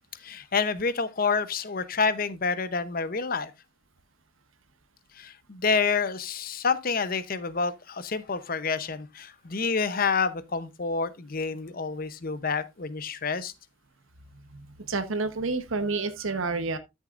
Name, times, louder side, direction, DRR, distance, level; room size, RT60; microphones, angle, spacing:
voice 1, 0.2-3.5 5.2-13.5, left 5 dB, 45° left, 0.7 m, -28 dB
voice 2, 14.9-16.8, right 3 dB, 80° right, 1.0 m, -29 dB
13.5 x 6.4 x 2.5 m
head